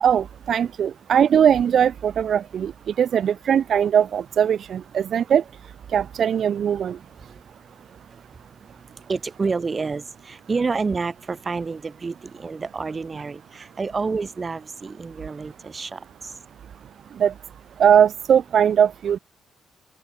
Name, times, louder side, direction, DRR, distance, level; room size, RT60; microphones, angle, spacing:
voice 1, 0.0-5.4 5.9-7.0 17.2-17.3 17.8-19.2, right 8 dB, 60° right, 0.3 m, -20 dB
voice 2, 9.1-16.3, right 4 dB, 30° right, 2.4 m, -29 dB
open air
cardioid pair, 90°, 0 cm